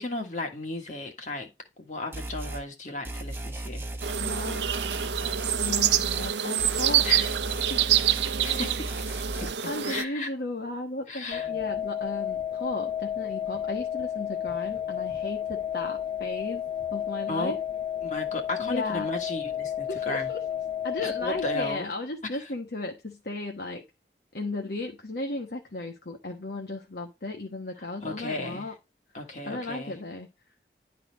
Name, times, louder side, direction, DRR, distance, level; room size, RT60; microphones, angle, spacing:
voice 1, 0.0-1.5 1.8-3.8 7.0-7.3 8.4-9.1 9.8-10.3 11.1-11.5 17.3-17.6 18.0-20.3 21.0-21.9 28.0-28.7 29.1-30.0, left 2 dB, 45° left, 1.6 m, -34 dB
sound 1, 2.1-2.6 3.0-6.3 6.6-9.5, right 1 dB, 15° right, 1.1 m, -36 dB
sound 2, 4.0-10.0, right 10 dB, 80° right, 0.6 m, -26 dB
voice 2, 4.2-4.7 5.5-7.1 7.7-8.0 9.6-16.6 16.9-17.6 18.6-19.1 19.9-20.4 20.8-23.8 24.3-28.7 29.5-30.3, left 2 dB, 65° left, 1.2 m, -35 dB
sound 3, 11.3-21.8, left 10 dB, 30° left, 0.7 m, -32 dB
11.0 x 4.1 x 4.0 m
head